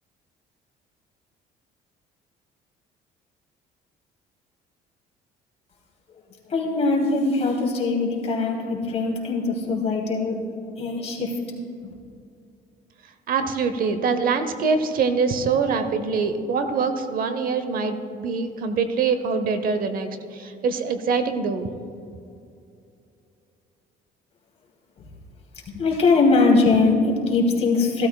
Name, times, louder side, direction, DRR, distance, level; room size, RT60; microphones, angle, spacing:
voice 1, 6.5-11.3 25.7-28.1, left 3 dB, 40° left, -3 dB, 2.9 m, -21 dB
voice 2, 13.3-21.7, right 5 dB, 60° right, 9 dB, 0.8 m, -24 dB
15.5 x 12.5 x 2.3 m, 2.5 s
cardioid pair, 110°, 17 cm